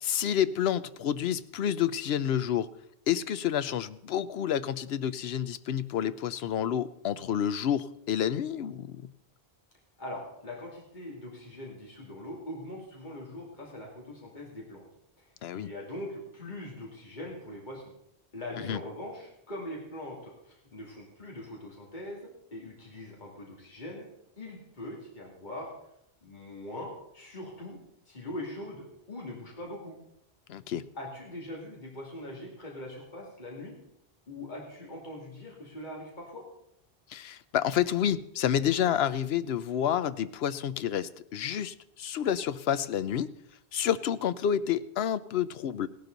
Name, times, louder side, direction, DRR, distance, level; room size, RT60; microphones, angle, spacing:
voice 1, 0.0-2.7 3.1-9.0 15.4-15.7 18.7-18.8 30.5-30.8 37.1-43.3 43.7-45.9, left 9 dB, 75° left, 14 dB, 0.9 m, -29 dB
voice 2, 10.0-14.8 15.2-17.8 18.3-24.1 24.4-25.8 26.2-27.8 28.1-30.0 30.9-33.8 34.3-36.5, left 1 dB, 45° left, -2 dB, 2.8 m, -42 dB
17.0 x 11.5 x 4.0 m, 0.77 s
omnidirectional pair, 1.1 m